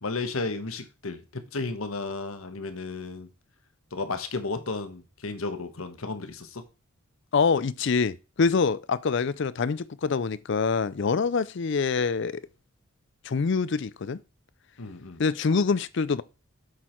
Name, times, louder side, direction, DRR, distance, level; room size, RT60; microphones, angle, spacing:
voice 1, 0.0-3.3 3.9-6.6 14.8-15.2, left 3 dB, 80° left, 1.2 m, -33 dB
voice 2, 7.3-12.4 13.2-14.2 15.2-16.2, left 5 dB, 55° left, 0.4 m, -25 dB
8.3 x 6.2 x 4.5 m
head